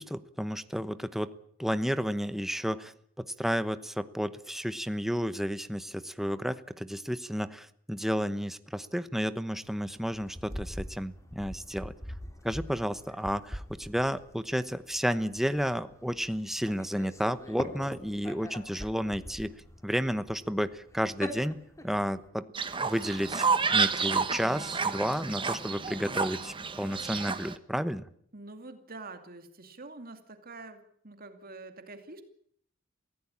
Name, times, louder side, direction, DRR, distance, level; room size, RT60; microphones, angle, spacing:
voice 1, 0.0-1.3 1.6-2.9 3.2-11.9 12.4-19.5 19.8-22.5 22.8-28.1, equal, ahead, 12 dB, 1.0 m, -32 dB
sound 1, 9.6-22.3, left 1 dB, 15° left, 3.2 m, -44 dB
Fowl, 22.5-27.5, right 5 dB, 25° right, 1.3 m, -30 dB
voice 2, 28.3-32.2, right 3 dB, 45° right, 7 dB, 2.5 m, -46 dB
24.5 x 16.5 x 8.7 m, 0.66 s
head